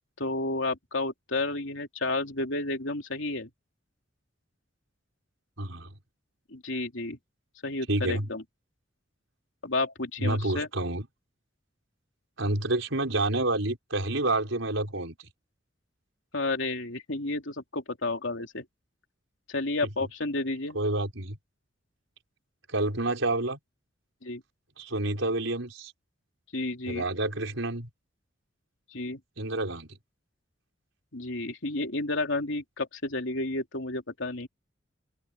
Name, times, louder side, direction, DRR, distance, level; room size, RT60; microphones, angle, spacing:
voice 1, 0.2-3.5 6.5-7.2 7.6-8.4 9.6-10.7 16.3-18.6 19.5-20.8 24.2-24.4 26.5-27.0 28.9-29.2 31.1-34.5, left 2 dB, 75° left, 3.1 m, -31 dB
voice 2, 5.6-5.9 7.9-8.3 10.2-11.0 12.4-15.1 20.7-21.4 22.7-23.6 24.8-25.9 26.9-27.9 29.4-29.9, right 2 dB, 90° right, 5.0 m, -28 dB
open air
head